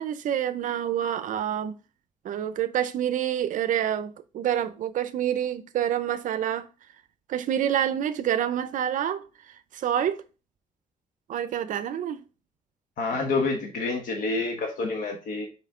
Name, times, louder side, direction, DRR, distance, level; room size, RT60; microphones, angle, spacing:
voice 1, 0.0-1.8 2.2-6.7 7.3-10.2 11.3-12.2, right 10 dB, 75° right, 0.5 m, -27 dB
voice 2, 13.0-15.5, left 3 dB, 85° left, 1.2 m, -28 dB
5.6 x 5.0 x 3.6 m
cardioid pair, 135°, 14 cm